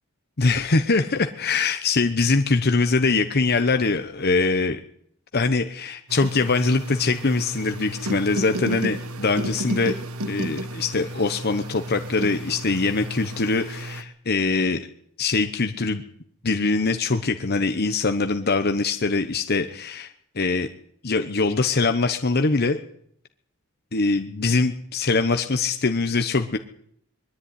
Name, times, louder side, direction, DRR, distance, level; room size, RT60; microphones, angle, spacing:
voice 1, 0.4-4.8 5.3-9.9 10.3-14.9 15.2-16.0 16.4-20.7 21.0-22.8 23.9-26.6, left 3 dB, 50° left, 7 dB, 1.0 m, -23 dB
sound 1, 6.1-14.0, right 1 dB, 90° right, 1.5 m, -32 dB
21.5 x 13.0 x 9.7 m, 0.68 s
head